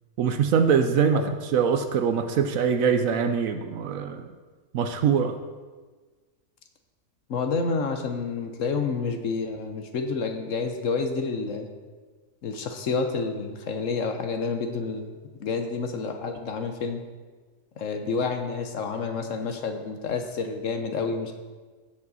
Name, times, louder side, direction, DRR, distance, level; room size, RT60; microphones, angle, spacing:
voice 1, 0.2-1.2 1.5-4.3 4.7-5.3, right 7 dB, 65° right, 8 dB, 0.9 m, -23 dB
voice 2, 7.3-11.7 12.4-15.1 15.4-17.0 17.8-21.3, left 4 dB, 60° left, 6 dB, 1.0 m, -29 dB
15.5 x 5.2 x 4.0 m, 1.4 s
omnidirectional pair, 1.7 m